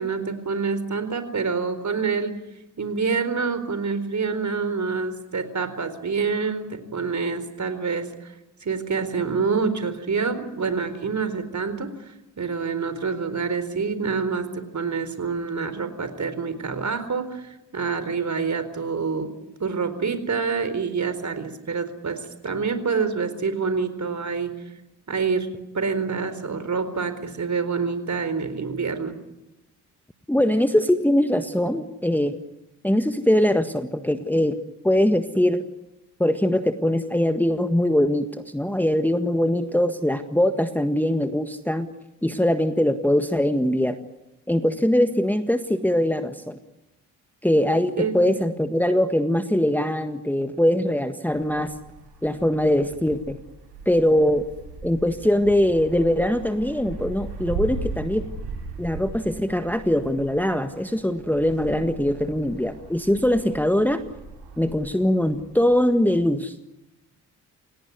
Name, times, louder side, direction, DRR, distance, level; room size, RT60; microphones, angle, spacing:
voice 1, 0.0-2.4 2.8-8.3 8.6-19.3 19.6-24.5 25.1-29.1 48.0-48.4, right 5 dB, 40° right, 11 dB, 4.4 m, -27 dB
voice 2, 30.3-32.3 32.8-34.6 34.8-35.6 36.2-41.9 42.2-44.0 44.5-46.6 47.4-51.7 52.2-53.4 53.8-54.4 54.8-58.3 58.8-64.0 64.6-66.5, left 1 dB, 5° left, 8 dB, 1.7 m, -22 dB
Wind, 51.3-66.2, right 4 dB, 65° right, 7.1 m, -38 dB
28.0 x 18.0 x 9.8 m, 0.92 s
hypercardioid pair, 40°, 44 cm